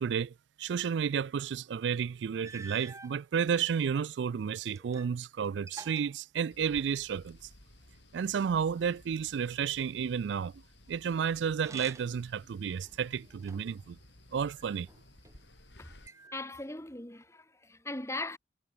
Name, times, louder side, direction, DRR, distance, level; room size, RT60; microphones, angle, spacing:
voice 1, 0.0-7.4 8.1-10.5 10.9-14.0 14.3-14.9, right 7 dB, 75° right, 0.3 m, -32 dB
sound 1, 2.4-3.2 4.0-5.2 5.4-7.0 11.5-12.3 12.8-13.8 14.6-15.4 16.0-16.8, right 3 dB, 15° right, 2.6 m, -50 dB
sound 2, 6.5-16.1, left 1 dB, 75° left, 3.4 m, -57 dB
voice 2, 16.3-18.4, left 2 dB, 15° left, 1.9 m, -39 dB
head